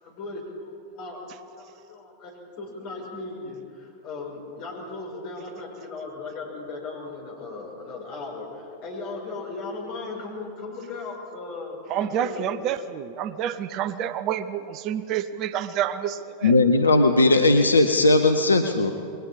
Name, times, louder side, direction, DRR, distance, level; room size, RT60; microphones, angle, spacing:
voice 1, 0.0-1.3 1.5-12.5, left 3 dB, 45° left, -1 dB, 5.5 m, -37 dB
voice 2, 11.9-16.5, right 10 dB, 40° right, 14 dB, 0.7 m, -28 dB
voice 3, 16.4-18.9, left 2 dB, 75° left, 6 dB, 0.9 m, -18 dB
28.5 x 21.5 x 4.3 m, 2.8 s
figure-of-eight pair, 90°, 0 cm